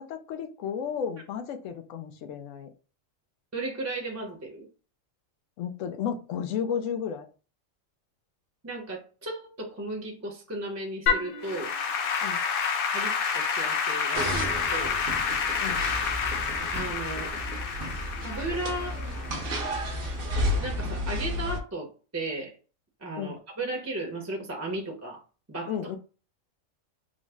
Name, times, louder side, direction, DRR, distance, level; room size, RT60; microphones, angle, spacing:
voice 1, 0.0-2.7 5.6-7.3 12.2-12.4 15.6-15.8 23.2-23.4 25.7-26.0, left 7 dB, 75° left, 6 dB, 1.0 m, -33 dB
voice 2, 3.5-4.7 8.6-11.7 12.9-15.0 16.7-17.3 18.2-19.0 20.6-22.5 23.0-25.2 25.5-25.7, right 2 dB, 15° right, 0 dB, 0.6 m, -35 dB
Applause / Keyboard (musical), 11.1-20.4, left 6 dB, 60° left, 0.6 m, -29 dB
sound 1, 14.1-21.6, equal, 50° right, 0.8 m, -32 dB
3.9 x 2.0 x 3.4 m, 0.35 s
omnidirectional pair, 1.4 m